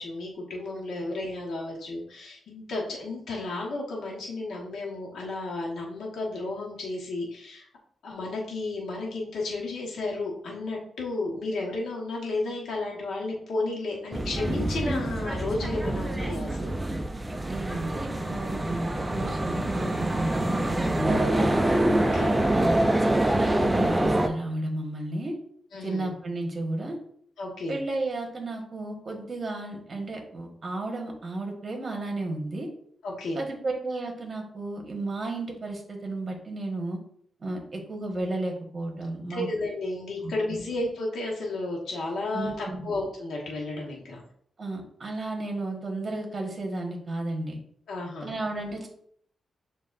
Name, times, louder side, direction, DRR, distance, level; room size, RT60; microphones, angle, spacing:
voice 1, 0.0-7.7 8.0-16.7 21.9-22.5 25.7-26.1 27.4-27.8 33.0-33.4 39.3-44.2 47.9-48.3, left 2 dB, 80° left, -3 dB, 1.2 m, -33 dB
sound 1, 14.1-24.3, right 1 dB, 15° right, 0.5 m, -26 dB
voice 2, 17.5-21.6 22.5-25.4 25.8-27.0 27.7-32.7 33.3-37.0 37.4-39.5 40.2-40.6 42.3-42.9 44.6-47.6 48.2-48.9, right 2 dB, 40° right, 2 dB, 1.3 m, -33 dB
7.2 x 2.6 x 2.5 m, 0.65 s
cardioid pair, 80°, 0 cm